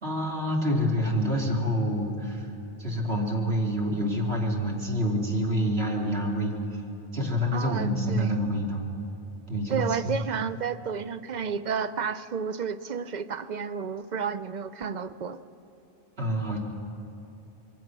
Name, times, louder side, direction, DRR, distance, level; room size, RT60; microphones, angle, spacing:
voice 1, 0.0-2.5 2.8-6.8 7.1-8.8 9.5-10.2 16.2-16.6, equal, 80° right, -2 dB, 3.3 m, -27 dB
voice 2, 7.5-8.3 9.7-15.4, right 6 dB, 50° right, 12 dB, 0.8 m, -31 dB
26.0 x 22.5 x 6.1 m, 2.9 s
omnidirectional pair, 1.0 m